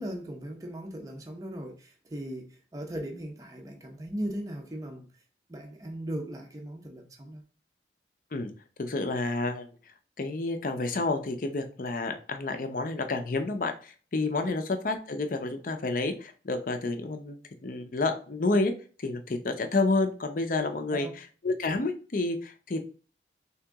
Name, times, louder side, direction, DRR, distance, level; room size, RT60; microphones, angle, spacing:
voice 1, 0.0-5.1 5.5-7.4 14.4-14.6 20.9-21.1, right 1 dB, 20° right, 0.5 m, -38 dB
voice 2, 8.8-9.7 10.2-18.7 19.0-21.1 21.4-22.8, left 3 dB, 50° left, 0.6 m, -29 dB
3.6 x 2.9 x 3.5 m
head